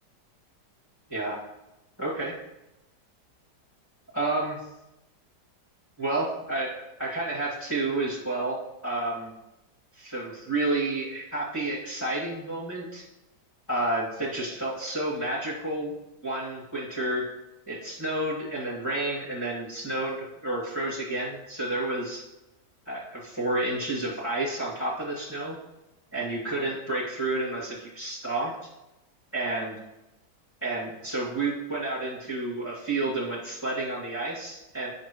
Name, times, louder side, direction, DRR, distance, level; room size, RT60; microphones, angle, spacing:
voice 1, 2.0-2.3 4.1-4.6 6.0-6.7 7.0-8.6 8.8-9.3 10.0-13.0 13.7-15.9 16.2-17.2 17.7-22.2 22.9-25.6 26.1-28.5 29.3-29.8 30.6-34.9, right 2 dB, 10° left, -8 dB, 2.3 m, -30 dB
9.2 x 5.9 x 3.1 m, 0.96 s
omnidirectional pair, 1.8 m